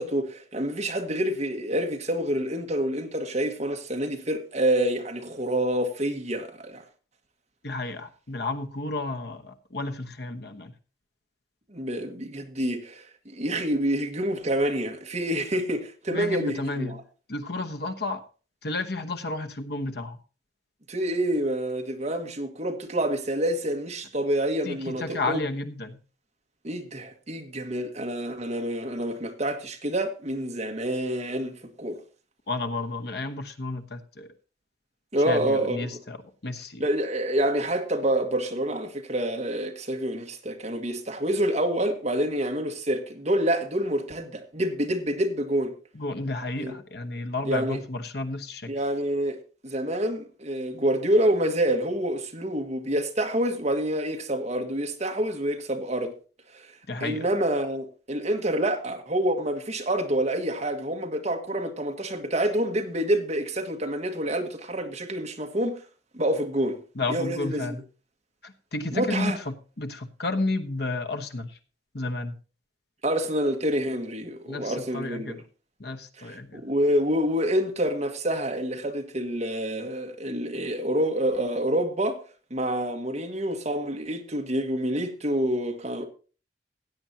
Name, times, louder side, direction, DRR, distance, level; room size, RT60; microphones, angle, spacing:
voice 1, 0.0-6.8 11.7-17.0 20.9-25.4 26.6-31.5 31.8-32.0 35.1-35.9 36.8-45.7 46.6-46.8 47.4-47.8 48.7-49.4 49.6-56.1 56.5-56.7 57.0-65.8 66.1-66.8 67.1-67.7 68.9-69.4 73.0-75.4 76.2-82.2 82.5-86.1, right 1 dB, 40° right, 1.7 m, -27 dB
voice 2, 7.6-10.7 16.1-17.0 17.3-18.2 18.6-20.2 24.6-26.0 32.5-34.3 35.2-36.2 36.4-36.9 45.9-48.7 56.9-57.3 66.9-67.8 68.4-71.6 71.9-72.3 74.4-75.4 75.8-76.6, left 2 dB, 65° left, 1.1 m, -32 dB
16.0 x 8.9 x 2.8 m
head